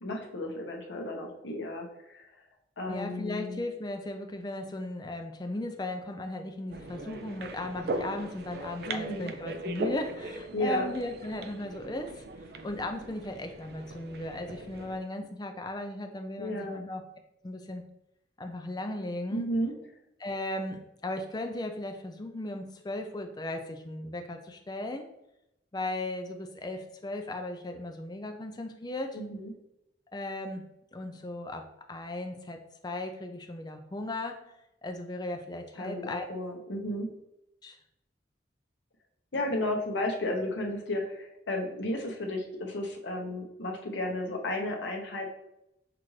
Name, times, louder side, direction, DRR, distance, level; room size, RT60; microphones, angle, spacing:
voice 1, 0.0-2.3 2.8-3.6 8.9-9.3 10.5-10.9 16.4-16.8 19.3-19.7 29.1-29.5 35.8-37.1 39.3-45.3, left 1 dB, 75° left, 1 dB, 0.8 m, -33 dB
voice 2, 2.9-12.2 12.6-17.0 17.4-17.8 18.4-19.5 20.2-25.1 25.7-29.2 30.1-30.6 30.9-34.4 34.8-36.3 37.6-37.8, left 1 dB, 20° left, 5 dB, 0.4 m, -36 dB
sound 1, 6.7-15.0, right 2 dB, 55° right, 0.4 m, -39 dB
5.8 x 2.5 x 3.1 m, 0.85 s
head